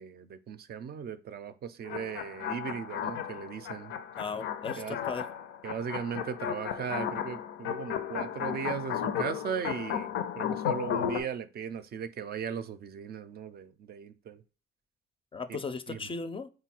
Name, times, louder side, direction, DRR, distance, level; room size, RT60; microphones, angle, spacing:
voice 1, 0.0-3.9 4.8-5.0 5.6-14.4 15.5-15.6 15.9-16.0, right 7 dB, 50° right, 0.4 m, -37 dB
sound 1, 1.9-11.2, left 9 dB, 85° left, 0.5 m, -34 dB
voice 2, 4.2-5.2 15.3-16.5, left 4 dB, 25° left, 0.4 m, -36 dB
3.8 x 2.2 x 4.3 m
cardioid pair, 90°, 20 cm